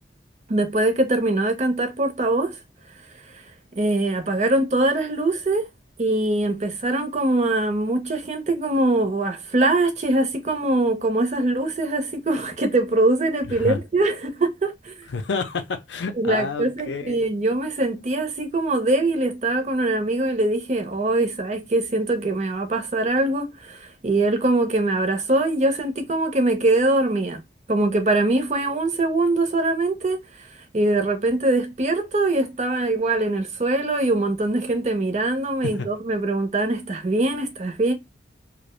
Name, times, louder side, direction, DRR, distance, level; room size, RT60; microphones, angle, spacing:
voice 1, 0.5-2.6 3.8-5.7 6.0-14.9 16.2-27.4 27.7-30.2 30.7-37.9, right 2 dB, 40° right, 0.5 m, -22 dB
voice 2, 13.5-13.8 15.1-17.3 35.6-35.9, left 4 dB, 85° left, 0.5 m, -29 dB
2.5 x 2.0 x 2.9 m
head